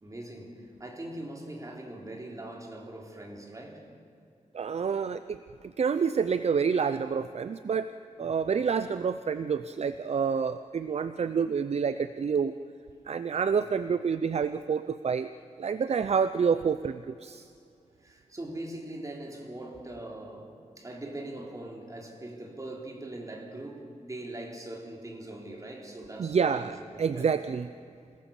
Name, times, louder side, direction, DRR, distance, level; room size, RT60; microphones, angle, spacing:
voice 1, 0.0-3.9 8.2-8.4 13.6-13.7 18.0-27.3, right 1 dB, 25° right, 0 dB, 3.5 m, -41 dB
voice 2, 4.5-7.9 8.2-12.6 13.1-15.3 15.6-17.5 26.2-27.7, right 6 dB, 55° right, 12 dB, 0.6 m, -28 dB
27.5 x 18.5 x 7.1 m, 2.5 s
wide cardioid pair, 140°, 13 cm